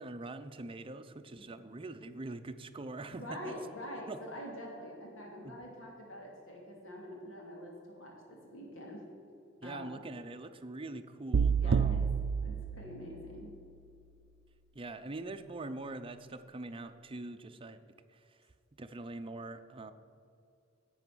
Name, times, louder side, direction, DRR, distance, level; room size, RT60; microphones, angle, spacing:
voice 1, 0.0-3.6 4.1-4.2 5.4-5.5 9.6-12.1 14.7-17.8 18.1-18.2 18.8-19.9, right 2 dB, 25° right, 9 dB, 0.6 m, -43 dB
voice 2, 3.1-9.0 9.6-10.0 11.6-12.1 12.4-13.5, equal, 85° left, -1 dB, 3.0 m, -45 dB
sound 1, 11.3-13.5, right 6 dB, 85° right, 0.4 m, -29 dB
11.0 x 7.8 x 6.2 m, 2.6 s
head